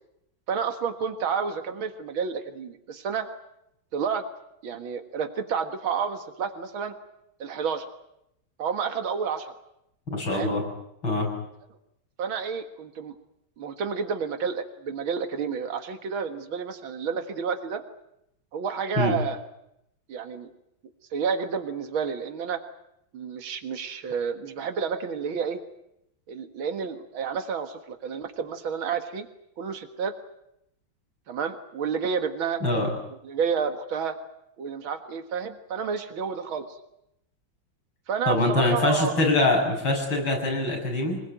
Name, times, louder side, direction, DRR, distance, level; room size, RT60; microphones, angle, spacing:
voice 1, 0.5-3.3 3.9-4.3 4.6-6.9 7.4-7.9 8.6-9.6 10.3-10.5 12.2-13.2 13.6-17.8 18.5-19.4 20.1-20.5 21.1-22.6 23.1-25.6 26.3-29.3 29.6-30.1 31.3-32.6 33.2-34.2 34.6-36.8 38.1-39.2, right 6 dB, 85° right, 7 dB, 2.5 m, -30 dB
voice 2, 10.1-10.6 11.0-11.3 19.0-19.1 32.6-32.9 38.3-41.2, left 2 dB, 85° left, 1 dB, 7.7 m, -24 dB
26.0 x 20.0 x 9.2 m, 0.80 s
omnidirectional pair, 2.1 m